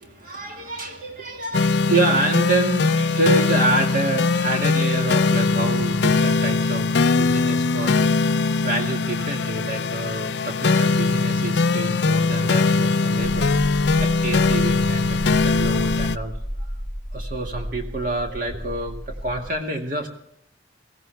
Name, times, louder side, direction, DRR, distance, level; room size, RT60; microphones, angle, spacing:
voice 1, 0.0-13.5 14.0-16.3 16.6-16.7 17.1-20.1, right 2 dB, 45° right, 2 dB, 2.1 m, -27 dB
sound 1, 1.5-16.2, left 3 dB, 60° left, 0.5 m, -21 dB
sound 2, 13.2-19.5, equal, 10° right, 2.0 m, -33 dB
21.5 x 16.5 x 3.5 m, 0.74 s
head